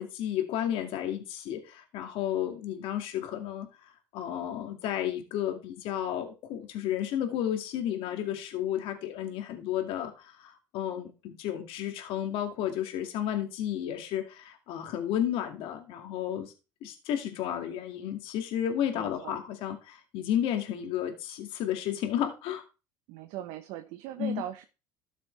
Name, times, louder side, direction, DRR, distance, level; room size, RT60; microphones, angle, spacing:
voice 1, 0.0-16.5 16.8-22.6 24.2-24.4, left 10 dB, 65° left, 5 dB, 2.2 m, -32 dB
voice 2, 18.9-19.4 23.1-24.6, right 13 dB, 70° right, 8 dB, 0.9 m, -39 dB
13.0 x 6.7 x 3.3 m, 0.30 s
supercardioid pair, 90°, 10 cm